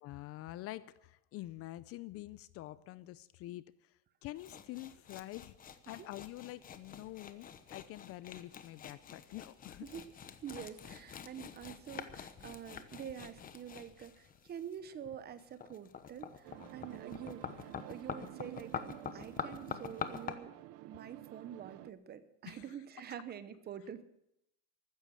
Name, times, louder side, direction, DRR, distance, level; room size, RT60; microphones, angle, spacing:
voice 1, 0.0-3.9 4.2-5.6 5.9-9.9 22.4-22.8, left 16 dB, 40° left, 17 dB, 0.5 m, -47 dB
sound 1, 4.4-20.3, left 7 dB, 25° left, 1.0 m, -46 dB
voice 2, 10.4-18.9 19.1-20.5 20.9-24.0, right 9 dB, 30° right, 13 dB, 0.9 m, -47 dB
sound 2, 16.4-21.9, right 16 dB, 45° right, 0.6 m, -51 dB
15.0 x 13.0 x 6.5 m, 0.81 s
cardioid pair, 150°, 35 cm